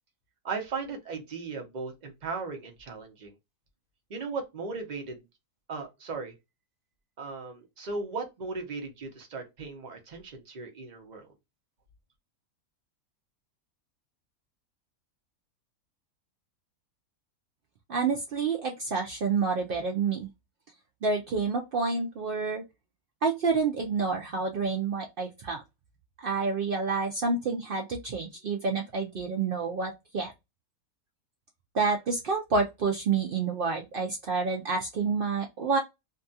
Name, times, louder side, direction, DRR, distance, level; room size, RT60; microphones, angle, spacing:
voice 1, 0.4-3.3 4.1-5.2 5.7-6.3 7.2-11.3, right 4 dB, 40° right, 0.7 m, -37 dB
voice 2, 17.9-20.3 21.0-22.6 23.2-25.6 26.2-30.3 31.7-35.8, right 4 dB, 75° right, 0.5 m, -28 dB
2.7 x 2.3 x 2.6 m
omnidirectional pair, 1.6 m